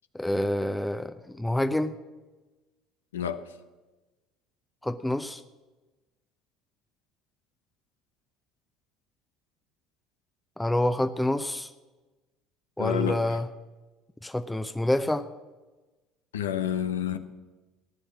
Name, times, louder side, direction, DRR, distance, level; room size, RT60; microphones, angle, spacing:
voice 1, 0.1-2.0 4.8-5.4 10.6-11.7 12.8-13.5 14.2-15.3, left 1 dB, 10° left, 0.7 m, -27 dB
voice 2, 3.1-3.5 12.8-13.4 16.3-17.2, left 9 dB, 90° left, 0.8 m, -29 dB
14.5 x 10.0 x 7.4 m
hypercardioid pair, 70°, 0 cm